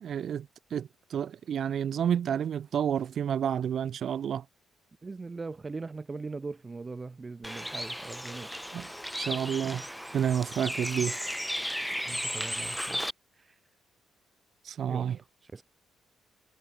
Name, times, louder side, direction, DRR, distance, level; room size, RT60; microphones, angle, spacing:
voice 1, 0.0-0.5 0.7-4.4 8.7-8.9 9.2-9.8 10.1-11.2 14.7-15.2, right 8 dB, 60° right, 1.1 m, -30 dB
voice 2, 5.0-8.5 10.9-11.0 12.1-13.0 13.4-13.5 14.9-15.6, right 3 dB, 25° right, 0.7 m, -40 dB
Bird, 7.4-13.1, equal, ahead, 1.8 m, -35 dB
cardioid pair, 90°, 0 cm